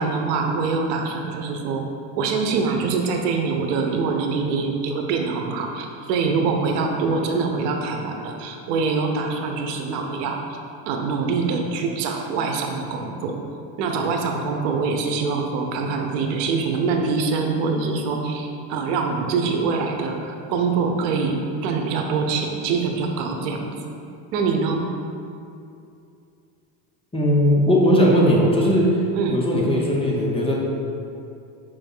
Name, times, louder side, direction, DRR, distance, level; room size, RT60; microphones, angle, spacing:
voice 1, 0.0-1.9 2.2-10.4 10.9-13.4 13.8-23.7 24.3-24.9 29.2-29.4, right 4 dB, 75° right, 3 dB, 0.9 m, -24 dB
voice 2, 27.1-28.9 29.3-30.6, equal, 10° left, -4 dB, 0.7 m, -18 dB
5.4 x 3.5 x 5.4 m, 2.6 s
supercardioid pair, 125°, 49 cm